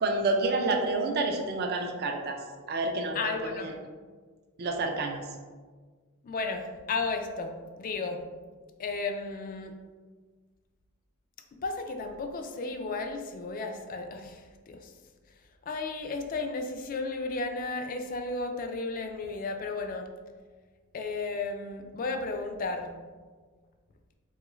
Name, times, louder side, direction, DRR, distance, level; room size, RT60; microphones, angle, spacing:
voice 1, 0.0-2.4 2.7-3.7 4.6-5.2, right 2 dB, 50° right, 3 dB, 0.3 m, -29 dB
voice 2, 3.1-3.7 6.2-8.3 8.8-9.7 11.6-14.9 15.6-20.1 20.9-22.9, left 3 dB, 40° left, 5 dB, 0.3 m, -34 dB
3.8 x 2.3 x 3.0 m, 1.5 s
head